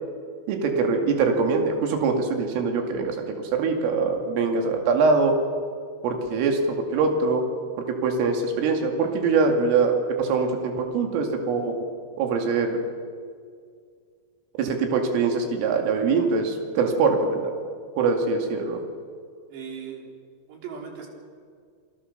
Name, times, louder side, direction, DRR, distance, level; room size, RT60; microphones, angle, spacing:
voice 1, 0.5-5.4 6.0-7.4 7.8-11.8 12.2-12.8 14.6-17.5 18.0-18.8, right 4 dB, 85° right, 3 dB, 4.9 m, -23 dB
voice 2, 19.5-20.1 20.5-21.1, right 6 dB, 60° right, 1 dB, 5.6 m, -38 dB
29.0 x 21.5 x 6.7 m, 2.1 s
omnidirectional pair, 5.7 m